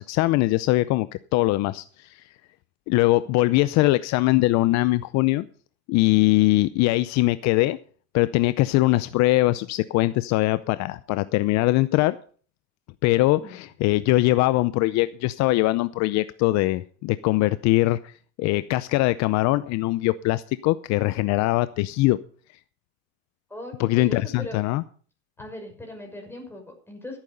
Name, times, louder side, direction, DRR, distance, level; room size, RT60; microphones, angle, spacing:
voice 1, 0.0-2.2 2.9-5.5 5.9-7.8 8.1-12.2 13.0-18.1 18.4-22.2 23.8-24.8, left 18 dB, 60° left, 15 dB, 0.6 m, -22 dB
voice 2, 3.2-3.6 13.3-13.6 23.5-24.6 25.4-27.2, left 1 dB, 5° left, 2 dB, 6.0 m, -39 dB
15.0 x 9.0 x 5.4 m, 0.44 s
supercardioid pair, 115°, 32 cm